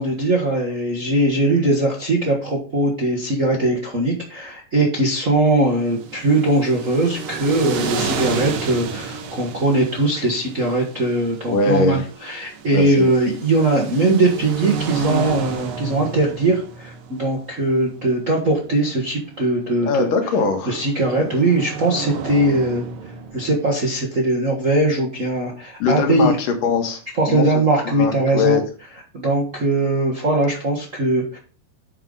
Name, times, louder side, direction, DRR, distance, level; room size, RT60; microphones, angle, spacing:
voice 1, 0.0-20.1 20.7-22.8 23.3-26.3 27.1-28.6 29.1-31.4, right 2 dB, 40° right, -2 dB, 1.1 m, -20 dB
sound 1, 5.8-23.7, right 4 dB, 80° right, 2.9 m, -31 dB
voice 2, 11.5-12.1 12.7-13.0 19.9-20.8 21.2-21.3 25.8-27.0 27.3-27.4 27.9-28.6, left 4 dB, 80° left, 4 dB, 3.2 m, -21 dB
8.9 x 5.7 x 3.9 m, 0.39 s
omnidirectional pair, 3.8 m